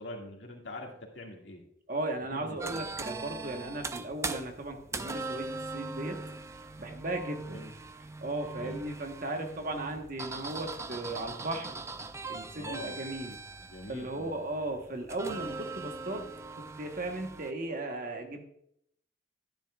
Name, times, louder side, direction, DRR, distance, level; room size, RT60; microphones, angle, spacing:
voice 1, 0.0-1.6 2.3-2.9 7.5-7.7 8.5-8.8 12.5-13.0 13.6-14.4, left 2 dB, 85° left, 0 dB, 2.0 m, -44 dB
voice 2, 1.9-5.5 5.7-6.2 6.8-7.6 8.2-11.8 12.3-13.4 13.9-16.3 16.5-18.4, right 2 dB, 50° right, 4 dB, 1.2 m, -36 dB
sound 1, 2.6-17.5, right 3 dB, 15° right, 0.4 m, -41 dB
12.0 x 10.0 x 2.4 m, 0.72 s
head